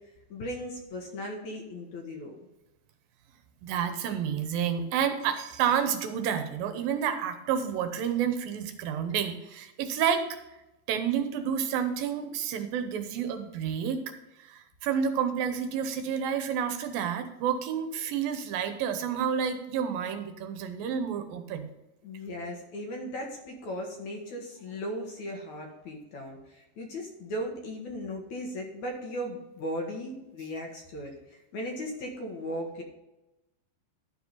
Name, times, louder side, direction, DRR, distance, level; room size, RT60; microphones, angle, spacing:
voice 1, 0.3-2.3 22.0-32.8, equal, 60° left, 1 dB, 2.5 m, -37 dB
voice 2, 3.6-10.2 10.9-14.0 14.4-21.7, right 8 dB, 80° right, 8 dB, 2.6 m, -30 dB
12.0 x 4.8 x 5.5 m, 0.97 s
omnidirectional pair, 4.2 m